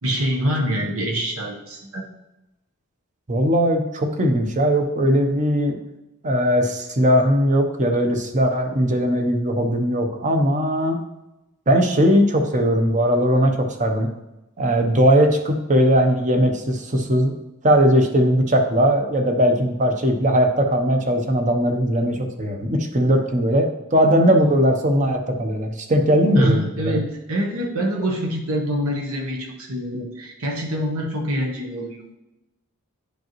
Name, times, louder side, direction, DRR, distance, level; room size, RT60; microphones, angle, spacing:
voice 1, 0.0-2.1 26.4-32.1, equal, 70° right, 0 dB, 1.0 m, -25 dB
voice 2, 3.3-5.8 6.2-11.0 11.7-14.1 14.6-17.3 17.6-26.9, equal, 35° right, 4 dB, 0.8 m, -19 dB
10.5 x 5.2 x 3.0 m, 0.97 s
head